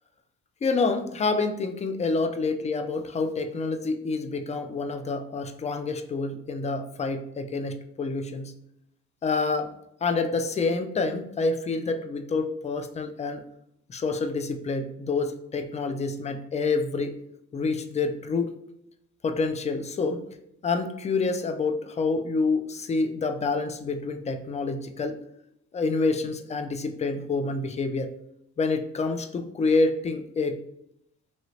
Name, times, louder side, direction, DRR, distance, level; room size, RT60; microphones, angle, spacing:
voice 1, 0.6-8.5 9.2-9.7 10.0-13.4 13.9-17.2 17.5-18.5 19.2-20.2 20.6-25.2 25.7-28.1 28.6-30.6, left 3 dB, 25° left, 7 dB, 0.3 m, -27 dB
3.0 x 2.9 x 2.7 m, 0.76 s
cardioid pair, 90°, 30 cm